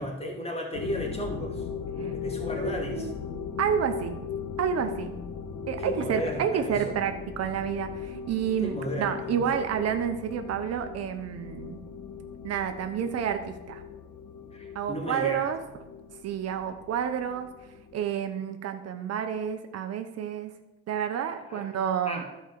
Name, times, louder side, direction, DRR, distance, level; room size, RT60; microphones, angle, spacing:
voice 1, 0.0-1.7 2.0-3.1 5.8-6.9 8.6-9.4 14.5-15.5 21.5-21.7 22.1-22.2, equal, 20° left, 1 dB, 2.7 m, -35 dB
sound 1, 0.7-18.1, left 6 dB, 75° left, 1.2 m, -38 dB
voice 2, 2.6-3.1 3.6-4.2 4.6-5.1 5.7-11.8 12.4-13.8 14.7-15.6 16.2-17.5 17.9-20.5 20.9-22.2, right 8 dB, 55° right, 7 dB, 0.9 m, -29 dB
12.0 x 5.1 x 6.9 m, 1.1 s
cardioid pair, 95°, 29 cm